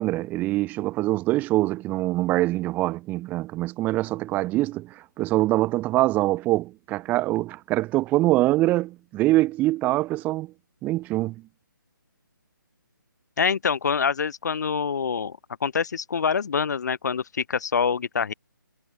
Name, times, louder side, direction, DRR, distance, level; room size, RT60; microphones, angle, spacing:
voice 1, 0.0-10.5 10.8-11.3, right 17 dB, 15° right, 1.2 m, -24 dB
voice 2, 13.4-18.3, left 6 dB, 55° left, 2.1 m, -25 dB
figure-of-eight pair, 145°, 11 cm